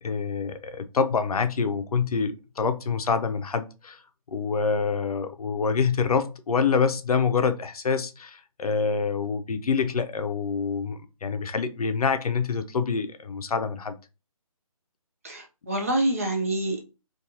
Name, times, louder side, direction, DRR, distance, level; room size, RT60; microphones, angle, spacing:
voice 1, 0.0-4.0 4.3-14.0, left 5 dB, 85° left, 0.5 m, -26 dB
voice 2, 15.2-16.8, right 1 dB, 25° right, 0.3 m, -26 dB
2.4 x 2.3 x 2.7 m
figure-of-eight pair, 155°, 18 cm